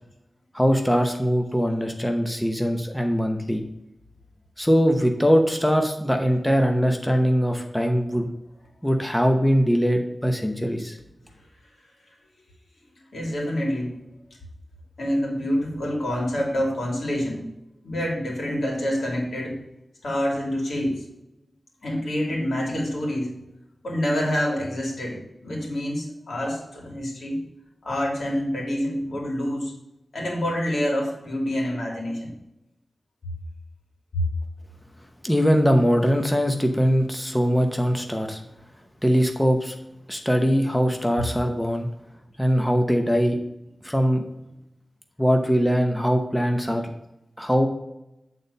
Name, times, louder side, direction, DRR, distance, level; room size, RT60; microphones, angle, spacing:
voice 1, 0.5-3.6 4.6-8.3 8.8-11.0 35.2-38.4 39.0-39.7 40.1-41.9 42.4-43.4 43.8-44.2 45.2-46.8 47.4-47.7, equal, 5° left, 3 dB, 0.8 m, -21 dB
voice 2, 13.1-13.9 15.0-17.4 17.8-19.6 20.0-21.0 21.8-23.3 23.8-27.4 27.8-29.7 30.1-32.3 34.1-34.2, equal, 80° left, -2 dB, 2.6 m, -27 dB
8.6 x 4.1 x 5.3 m, 0.89 s
wide cardioid pair, 110°, 0 cm